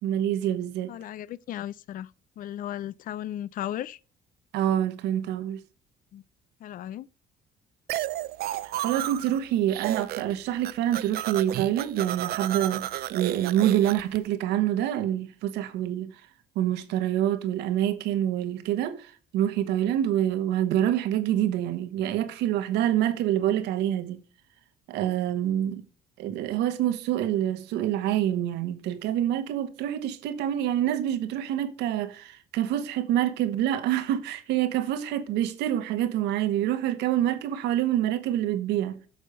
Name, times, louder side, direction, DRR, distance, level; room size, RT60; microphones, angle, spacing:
voice 1, 0.0-0.9 4.5-5.6 8.8-16.1 16.5-24.2 24.9-25.8 26.2-39.0, right 11 dB, 85° right, 1.2 m, -26 dB
voice 2, 0.9-4.0 6.1-6.2 6.6-7.1, left 12 dB, 55° left, 0.5 m, -36 dB
sound 1, 7.9-9.4 9.7-10.3 10.6-14.2, right 14 dB, 65° right, 0.6 m, -32 dB
8.8 x 6.4 x 5.4 m
cardioid pair, 110°, 17 cm